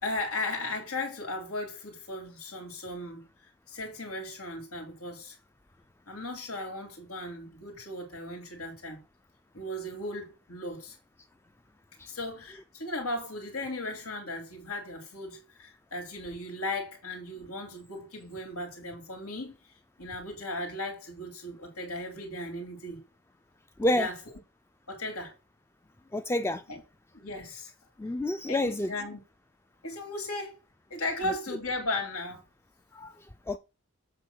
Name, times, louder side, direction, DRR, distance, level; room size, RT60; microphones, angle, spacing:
voice 1, 0.0-5.4 6.1-9.0 9.5-11.0 12.1-19.5 20.0-23.0 23.9-24.2 24.9-25.3 26.7-26.8 27.1-27.7 28.5-29.2 29.8-30.6 30.9-32.4, left 2 dB, 90° left, 2.9 m, -36 dB
voice 2, 26.1-26.6 28.0-28.9 32.9-33.1 33.5-33.6, left 1 dB, 10° left, 0.3 m, -28 dB
7.8 x 3.5 x 6.2 m
head